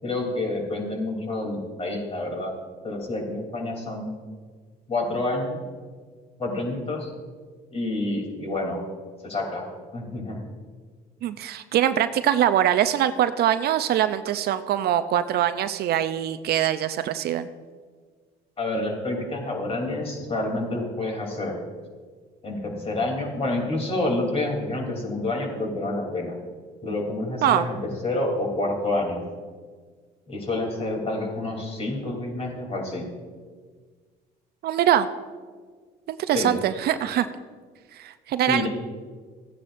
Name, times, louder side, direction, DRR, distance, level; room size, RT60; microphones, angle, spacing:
voice 1, 0.0-2.5 2.8-4.1 4.9-5.6 6.4-7.1 7.7-8.8 9.2-9.7 9.9-10.4 18.6-21.6 22.4-26.4 26.8-29.2 30.3-33.1 36.3-36.5 38.5-38.7, left 2 dB, 35° left, 0 dB, 3.2 m, -28 dB
voice 2, 11.2-17.5 27.4-27.6 34.6-35.1 36.1-37.3 37.9-38.7, right 11 dB, 60° right, 11 dB, 0.5 m, -23 dB
15.5 x 9.7 x 2.6 m, 1.6 s
supercardioid pair, 90°, 19 cm